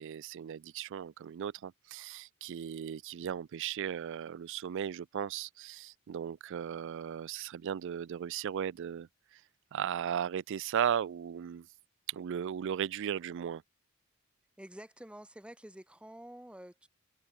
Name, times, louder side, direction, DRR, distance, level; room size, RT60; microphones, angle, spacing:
voice 1, 0.0-9.4 9.7-11.7 12.1-13.6, right 8 dB, 60° right, 0.3 m, -36 dB
voice 2, 14.6-16.9, right 1 dB, 5° right, 1.0 m, -49 dB
head